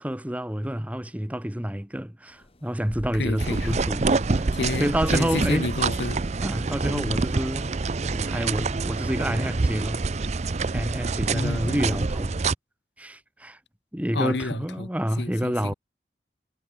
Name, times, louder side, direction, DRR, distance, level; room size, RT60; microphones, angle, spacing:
voice 1, 0.0-4.1 4.4-4.5 4.8-5.7 6.4-7.7 8.0-10.0 10.7-12.4 13.0-13.6 13.9-15.7, equal, 10° right, 1.0 m, -28 dB
sound 1, 2.4-7.5, equal, 35° left, 2.2 m, -39 dB
voice 2, 3.2-3.8 4.5-6.2 6.9-7.2 11.3-11.9 14.1-14.9 15.2-15.7, left 3 dB, 80° left, 1.1 m, -30 dB
sound 2, 3.4-12.6, right 3 dB, 40° right, 0.5 m, -26 dB
head